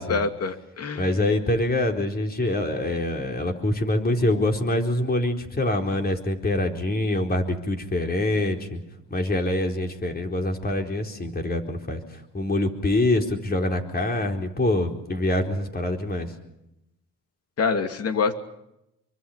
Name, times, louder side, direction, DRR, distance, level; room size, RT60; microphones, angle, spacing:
voice 1, 0.0-1.1 17.6-18.3, left 5 dB, 55° left, 7 dB, 2.6 m, -25 dB
voice 2, 0.9-8.8 9.1-16.3, left 1 dB, 30° left, 3 dB, 4.2 m, -25 dB
26.5 x 24.0 x 5.7 m, 0.85 s
cardioid pair, 90°, 30 cm